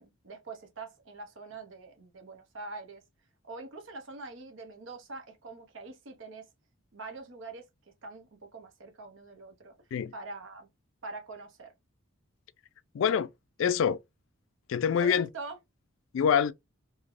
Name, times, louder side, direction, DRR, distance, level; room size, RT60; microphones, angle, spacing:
voice 1, 0.0-3.0 3.4-6.5 6.9-7.7 8.0-9.7 10.1-10.7 11.0-11.7 15.0-15.6, right 3 dB, 65° right, 0.8 m, -44 dB
voice 2, 12.9-13.3 13.6-14.0 14.7-15.3 16.1-16.5, left 7 dB, 65° left, 0.3 m, -25 dB
3.2 x 2.8 x 2.5 m
head